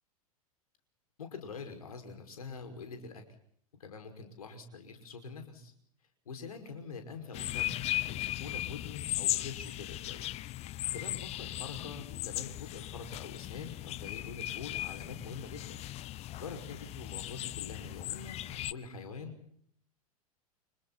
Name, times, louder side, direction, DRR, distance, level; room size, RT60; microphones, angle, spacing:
voice 1, 1.2-3.2 3.8-5.7 6.3-7.8 8.0-10.2 10.9-15.8 16.2-19.3, left 4 dB, 75° left, 6 dB, 5.6 m, -45 dB
sound 1, 7.3-18.7, left 15 dB, 35° left, 0.8 m, -37 dB
30.0 x 27.0 x 4.2 m, 0.65 s
figure-of-eight pair, 90°, 19 cm